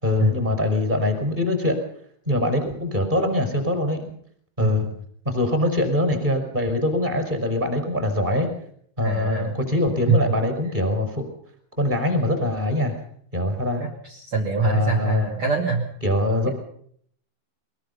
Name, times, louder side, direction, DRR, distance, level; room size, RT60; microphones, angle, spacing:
voice 1, 0.0-1.8 2.2-4.0 4.6-4.9 5.2-8.5 9.0-11.2 11.8-12.9 13.3-13.8 14.6-15.3 16.0-16.5, left 1 dB, 10° right, 6 dB, 5.0 m, -23 dB
voice 2, 4.6-4.9 9.0-9.5 10.1-10.2 14.0-15.8, right 4 dB, 35° right, 0 dB, 2.3 m, -23 dB
22.5 x 22.5 x 5.6 m, 0.64 s
omnidirectional pair, 5.7 m